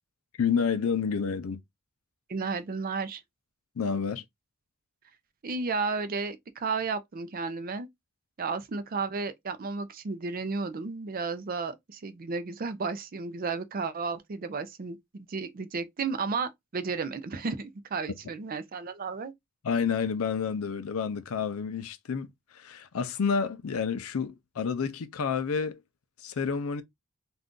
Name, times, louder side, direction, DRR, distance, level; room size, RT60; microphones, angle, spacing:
voice 1, 0.4-1.6 3.8-4.2 19.6-22.3 22.5-25.8 26.2-26.8, left 6 dB, 80° left, 0.5 m, -29 dB
voice 2, 2.3-3.2 5.4-7.9 8.4-19.3, right 4 dB, 45° right, 0.4 m, -33 dB
2.6 x 2.3 x 3.6 m
head